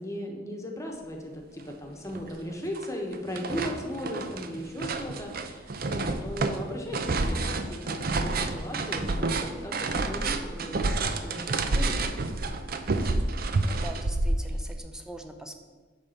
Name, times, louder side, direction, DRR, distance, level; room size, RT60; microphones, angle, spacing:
voice 1, 0.0-10.8 11.2-12.1, equal, 15° left, 2 dB, 1.2 m, -37 dB
sound 1, 1.7-1.8 2.1-2.9 3.1-14.8, right 3 dB, 55° right, 0.6 m, -29 dB
voice 2, 13.6-15.7, right 1 dB, 5° right, 5 dB, 0.7 m, -42 dB
9.3 x 3.7 x 6.5 m, 1.4 s
head